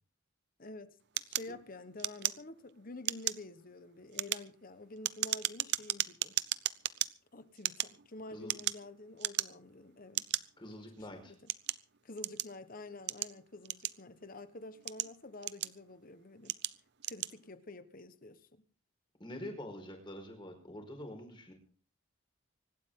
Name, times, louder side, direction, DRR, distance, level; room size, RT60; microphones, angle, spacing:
voice 1, 0.6-6.4 7.3-10.3 10.7-11.5 12.0-16.6 17.0-18.6, left 2 dB, 45° left, 1.2 m, -49 dB
sound 1, 1.2-2.7 3.0-3.5 4.0-7.1 7.6-8.9 9.2-9.7 10.1-10.4 11.1-12.6 13.1-14.2 14.7-15.9 16.4-16.7 17.0-17.3, right 14 dB, 55° right, 0.7 m, -35 dB
voice 2, 10.6-11.3 19.2-21.5, left 1 dB, 25° left, 4.9 m, -45 dB
25.5 x 12.0 x 3.8 m
head